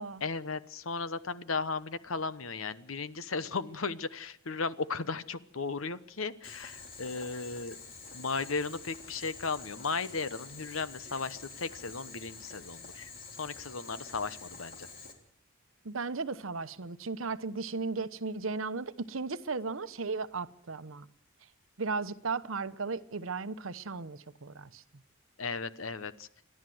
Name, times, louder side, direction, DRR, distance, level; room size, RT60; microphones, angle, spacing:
voice 1, 0.2-7.8 8.1-13.1 13.4-14.9 25.4-26.3, left 4 dB, 75° left, 1.1 m, -36 dB
Boiling, 6.4-15.1, left 4 dB, 45° left, 3.4 m, -48 dB
voice 2, 15.8-21.1 21.8-24.8, right 4 dB, 70° right, 0.9 m, -36 dB
29.0 x 12.0 x 7.8 m
head